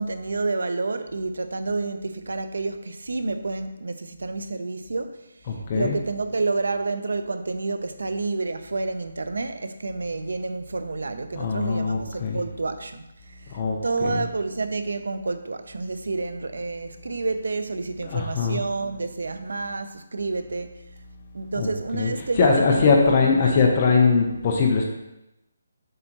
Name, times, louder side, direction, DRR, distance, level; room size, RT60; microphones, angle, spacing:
voice 1, 0.0-20.8 21.3-23.7, right 3 dB, 80° right, 10 dB, 0.7 m, -29 dB
voice 2, 5.5-6.0 11.3-12.4 13.5-14.2 18.0-18.6 21.5-24.8, left 4 dB, 20° left, 0 dB, 0.8 m, -21 dB
7.7 x 6.5 x 3.0 m, 0.91 s
hypercardioid pair, 180°, 0 cm